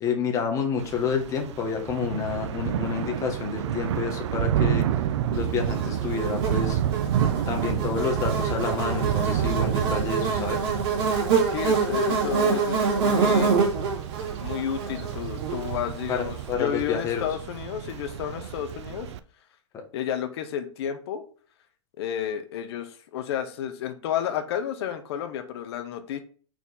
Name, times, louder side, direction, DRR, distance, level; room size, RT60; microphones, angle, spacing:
voice 1, 0.0-4.9 5.3-6.8 7.5-10.6 16.1-17.3, left 6 dB, 20° left, 2 dB, 1.3 m, -29 dB
Thunder / Rain, 0.8-19.2, right 10 dB, 65° right, 0.5 m, -30 dB
Buzz, 5.7-16.1, right 5 dB, 45° right, 2.4 m, -26 dB
voice 2, 11.5-13.7 14.4-19.1 19.9-21.2 22.0-26.2, left 9 dB, 55° left, 7 dB, 1.0 m, -31 dB
4.6 x 4.4 x 5.4 m, 0.42 s
supercardioid pair, 160°, 16 cm